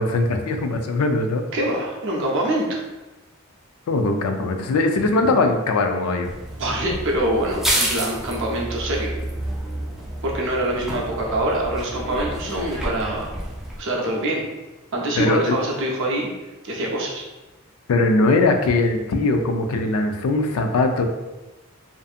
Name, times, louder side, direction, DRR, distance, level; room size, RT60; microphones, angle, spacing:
voice 1, 0.0-1.4 3.9-6.3 15.2-15.5 17.9-21.0, left 2 dB, 85° left, 5 dB, 0.3 m, -20 dB
voice 2, 1.5-2.8 6.6-9.1 10.2-13.3 13.8-14.4 14.9-16.3 16.6-17.2, right 1 dB, 60° right, -1 dB, 0.6 m, -24 dB
sound 1, 6.2-13.8, right 1 dB, ahead, 0.3 m, -29 dB
2.6 x 2.5 x 2.4 m, 1.1 s
head